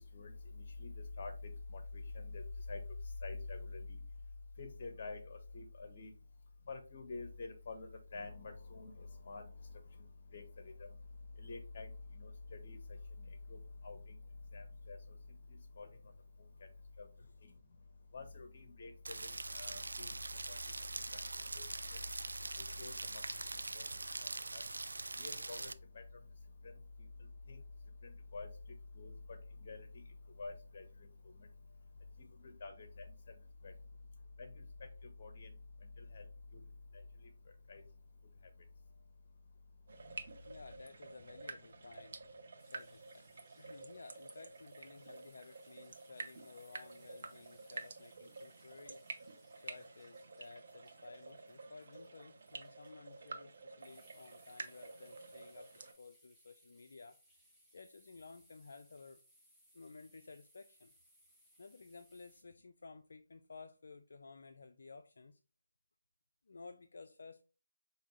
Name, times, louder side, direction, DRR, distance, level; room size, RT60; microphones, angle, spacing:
voice 1, 0.1-0.9 1.2-1.8 2.1-2.4 2.7-2.8 3.2-4.0 4.6-6.1 6.7-9.5 10.3-10.4 10.8-10.9 11.4-11.9 12.2-12.8 13.5-13.6 13.8-14.0 14.5-15.0 15.8-15.9 17.0-17.1 18.1-19.2 19.5-20.1 21.1-21.2 21.6-21.7 22.8-23.2 23.7-23.9 24.5-24.6 25.2-26.0 27.5-27.6 28.0-28.5 29.0-29.9 30.4-30.8 32.4-33.0 33.6-33.7 34.4-34.6 35.2-35.5 36.1-36.2 37.7-37.8, left 3 dB, 45° left, 1.0 m, -47 dB
Rain, 19.1-25.7, right 2 dB, 85° right, 0.3 m, -43 dB
sound 1, 39.9-55.9, right 3 dB, 55° right, 0.7 m, -50 dB
voice 2, 40.4-42.2 42.7-43.3 43.6-49.0 49.6-57.2 57.7-59.2 59.7-60.9 61.6-65.4 66.4-67.4, left 4 dB, 65° left, 0.3 m, -55 dB
sound 2, 42.6-62.4, equal, ahead, 0.6 m, -69 dB
4.9 x 2.7 x 3.0 m
figure-of-eight pair, 155°, 0 cm